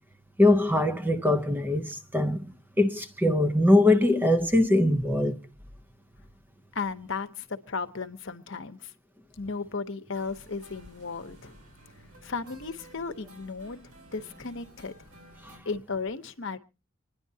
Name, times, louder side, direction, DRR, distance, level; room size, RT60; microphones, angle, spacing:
voice 1, 0.4-2.5 2.8-5.4, left 1 dB, 10° right, 0.6 m, -22 dB
voice 2, 6.7-8.9 9.4-11.5 12.2-13.8 14.1-14.9 15.6-16.6, left 4 dB, 55° left, 0.9 m, -35 dB
sound 1, 10.1-15.6, right 1 dB, 90° right, 4.9 m, -53 dB
26.0 x 10.5 x 2.7 m
head